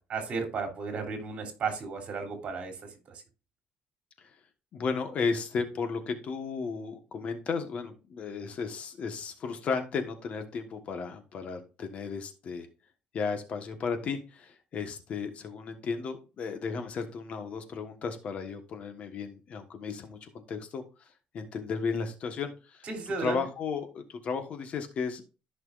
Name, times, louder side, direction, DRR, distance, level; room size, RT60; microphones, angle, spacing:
voice 1, 0.0-2.8 22.8-23.4, right 4 dB, 45° right, 2 dB, 3.2 m, -34 dB
voice 2, 4.7-12.7 13.1-20.8 21.3-22.9 23.2-25.2, left 5 dB, 50° left, 7 dB, 1.4 m, -34 dB
14.0 x 6.0 x 2.5 m, 0.32 s
cardioid pair, 130°, 3 cm